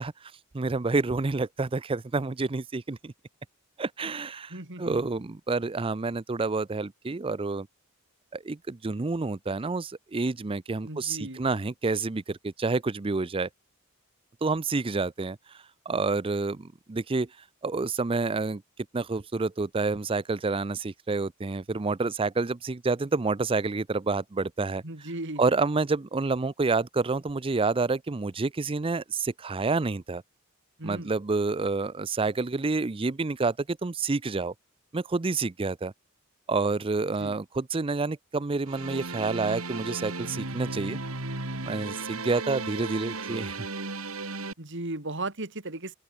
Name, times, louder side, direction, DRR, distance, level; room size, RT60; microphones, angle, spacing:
voice 1, 0.0-3.1 3.8-7.7 8.3-13.5 14.4-17.3 17.6-18.6 18.9-25.1 25.4-30.2 30.8-34.5 34.9-35.9 36.5-41.0 41.6-43.6, right 3 dB, 25° right, 0.5 m, -28 dB
voice 2, 4.5-5.1 10.8-11.4 24.8-25.4 30.8-31.1 37.2-37.4 44.6-45.9, right 2 dB, 60° right, 3.5 m, -36 dB
sound 1, 38.7-44.5, right 3 dB, 85° right, 4.3 m, -35 dB
open air
head